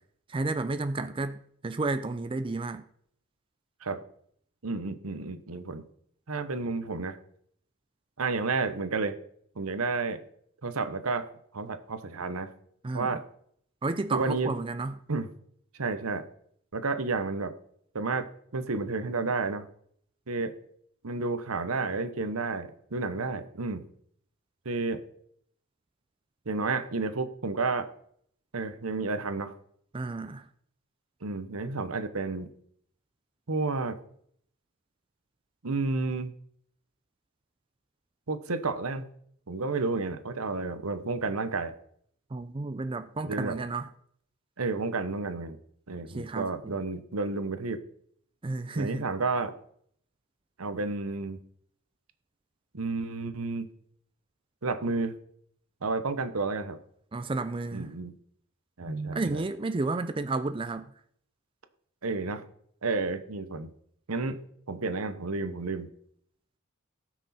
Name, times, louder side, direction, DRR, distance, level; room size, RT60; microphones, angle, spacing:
voice 1, 0.3-2.8 12.8-13.2 13.8-15.0 29.9-30.5 42.3-43.9 46.1-46.7 48.4-49.1 57.1-57.9 59.1-60.9, right 3 dB, 25° right, 0.4 m, -32 dB
voice 2, 4.6-5.8 6.3-7.2 8.2-9.2 9.6-10.2 10.6-11.3 11.5-12.5 12.9-13.2 14.1-14.5 15.1-15.3 15.8-16.2 16.7-17.5 17.9-18.3 18.5-19.6 20.3-20.5 21.0-23.8 24.6-25.0 26.5-27.9 28.5-29.5 31.2-32.5 33.5-34.0 35.6-36.3 38.3-39.1 39.5-41.7 43.2-43.5 44.6-45.6 45.9-47.8 48.8-49.5 50.6-51.4 52.7-53.7 54.6-55.1 55.8-56.8 57.7-58.1 58.8-59.4 62.0-62.4 62.8-63.7 64.1-64.4 64.7-65.9, right 3 dB, 80° right, 1.0 m, -31 dB
18.0 x 6.2 x 4.3 m
head